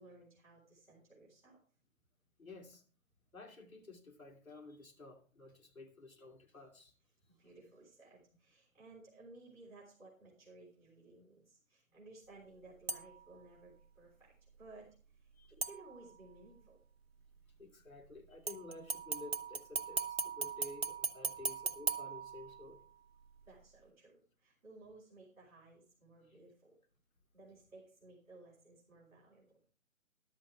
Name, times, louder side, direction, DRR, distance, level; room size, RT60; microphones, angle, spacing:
voice 1, 0.0-1.6 7.3-15.3 15.6-16.8 23.5-26.8 27.3-29.6, right 2 dB, 5° right, 4.0 m, -58 dB
voice 2, 2.4-2.8 3.3-6.9 15.4-15.5 17.6-22.8, left 2 dB, 80° left, 2.9 m, -52 dB
sound 1, 12.9-13.3 15.6-16.3 18.5-22.9 23.3-23.4, right 4 dB, 45° right, 1.0 m, -39 dB
13.5 x 11.5 x 3.4 m
figure-of-eight pair, 150°, 41 cm